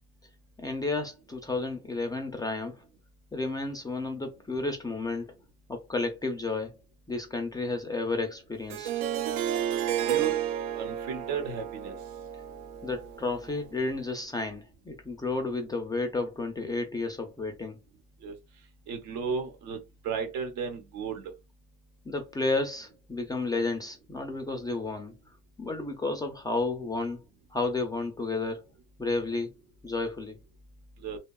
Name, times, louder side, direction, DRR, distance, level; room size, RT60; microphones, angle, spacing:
voice 1, 0.6-2.8 3.3-5.3 5.7-6.7 7.1-8.9 12.8-17.8 22.1-27.2 27.5-28.7 29.0-30.4, left 3 dB, 10° left, 0.3 m, -32 dB
Harp, 8.7-13.7, right 10 dB, 80° right, 0.5 m, -32 dB
voice 2, 10.1-10.4 10.7-11.9 18.2-18.3 18.9-19.8 20.0-21.2 31.0-31.2, right 6 dB, 65° right, 0.9 m, -34 dB
2.8 x 2.2 x 2.3 m
cardioid pair, 125°, 32 cm